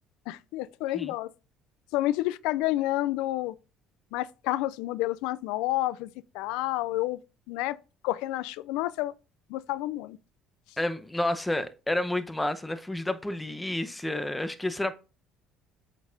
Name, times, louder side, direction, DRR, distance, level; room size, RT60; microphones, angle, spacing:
voice 1, 0.3-1.3 1.9-3.5 4.1-7.2 7.5-7.8 8.0-9.1 9.5-10.2, left 16 dB, 80° left, 0.3 m, -29 dB
voice 2, 10.8-14.9, left 1 dB, 10° left, 0.9 m, -30 dB
8.0 x 5.3 x 2.6 m
supercardioid pair, 80°, 0 cm